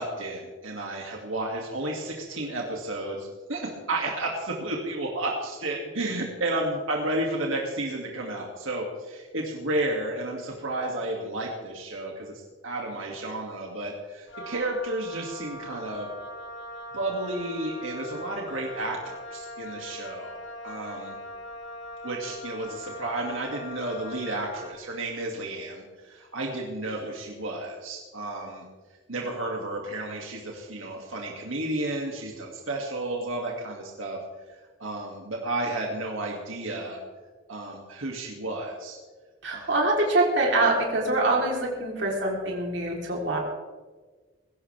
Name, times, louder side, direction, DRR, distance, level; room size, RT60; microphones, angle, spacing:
voice 1, 0.0-16.1 16.9-21.2 22.0-28.6 29.1-34.2 34.5-37.0 37.5-39.0 39.5-39.7, right 2 dB, 85° right, -1 dB, 2.4 m, -32 dB
Wind instrument woodwind instrument, 14.3-24.9, left 1 dB, 75° left, 2.1 m, -41 dB
voice 2, 39.4-43.4, right 2 dB, 65° right, -2 dB, 3.7 m, -24 dB
20.5 x 16.5 x 3.5 m, 1.4 s
head